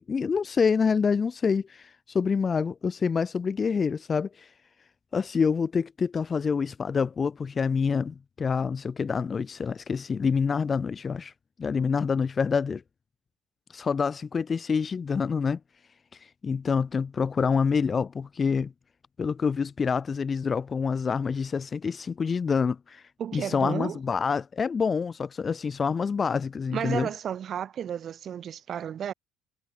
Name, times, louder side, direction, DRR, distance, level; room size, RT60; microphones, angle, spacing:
voice 1, 0.0-4.5 5.1-11.3 11.6-12.8 13.7-15.6 16.1-18.7 19.2-23.0 23.3-27.1, left 5 dB, 25° left, 0.4 m, -27 dB
voice 2, 23.2-24.0 26.7-29.1, right 9 dB, 40° right, 1.0 m, -33 dB
cardioid pair, 140°, 0 cm